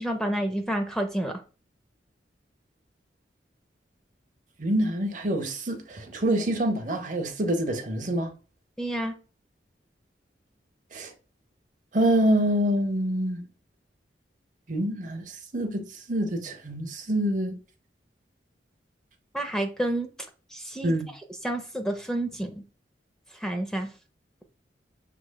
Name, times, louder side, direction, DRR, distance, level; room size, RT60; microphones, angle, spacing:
voice 1, 0.0-1.4 8.8-9.2 19.3-20.1 20.5-20.9 21.4-22.6 23.3-23.9, right 1 dB, 5° left, 0.4 m, -29 dB
voice 2, 4.6-8.3 10.9-11.1 11.9-13.4 14.7-17.6 20.8-21.1, right 1 dB, 45° right, 0.7 m, -26 dB
6.1 x 3.0 x 2.2 m
head